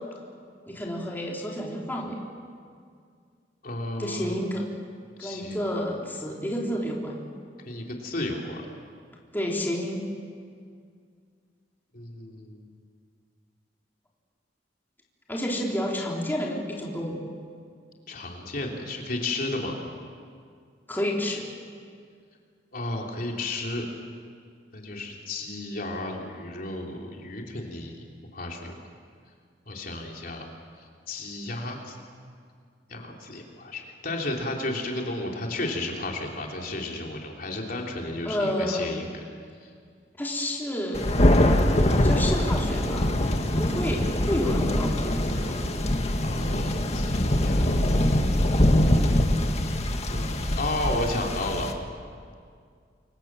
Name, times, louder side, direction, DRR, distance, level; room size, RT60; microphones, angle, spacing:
voice 1, 0.7-2.2 4.0-4.7 5.2-7.3 9.3-10.0 15.3-17.2 20.9-21.5 38.2-38.9 40.2-41.1 41.9-43.1 43.6-45.8, equal, 10° left, -2 dB, 3.5 m, -30 dB
voice 2, 3.6-4.4 5.2-5.6 7.6-8.7 11.9-12.7 18.1-19.8 22.7-23.9 24.7-28.0 28.3-28.7 29.7-30.5 31.1-32.0 32.9-39.2 39.6-39.7 46.2-47.8 48.9-49.1 50.1-51.7, left 2 dB, 55° left, 0 dB, 3.3 m, -33 dB
Thunder, 40.9-51.7, left 1 dB, 40° left, 1.9 m, -23 dB
28.0 x 24.0 x 7.6 m, 2.2 s
head